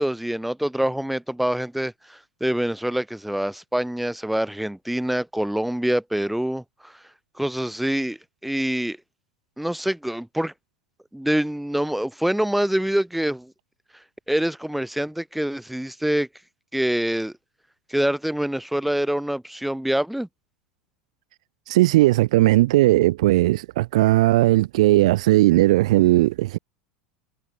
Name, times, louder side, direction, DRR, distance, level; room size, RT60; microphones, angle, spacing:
voice 1, 0.0-6.9 7.4-9.0 9.6-10.5 11.1-13.5 14.3-16.3 16.7-17.3 17.9-20.3, right 1 dB, ahead, 1.1 m, -25 dB
voice 2, 21.7-26.6, right 17 dB, 60° right, 0.4 m, -17 dB
figure-of-eight pair, 80°, 4 cm